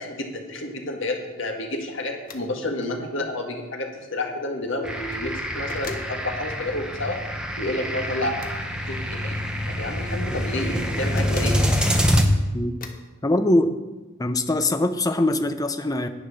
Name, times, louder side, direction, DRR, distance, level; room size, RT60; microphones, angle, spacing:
voice 1, 0.0-7.2 7.6-8.4 8.9-9.4 9.7-11.6, left 2 dB, 60° left, 2 dB, 1.9 m, -30 dB
sound 1, 2.2-2.5 2.8-2.9 4.9-5.2 5.7-6.1 8.3-8.6 10.9-11.6 12.8-13.1, left 3 dB, 40° left, 1.1 m, -40 dB
sound 2, 4.8-12.2, equal, 5° right, 1.0 m, -26 dB
voice 2, 13.2-13.7 14.2-16.1, left 1 dB, 15° left, 9 dB, 0.6 m, -22 dB
10.5 x 9.3 x 6.6 m, 1.1 s
head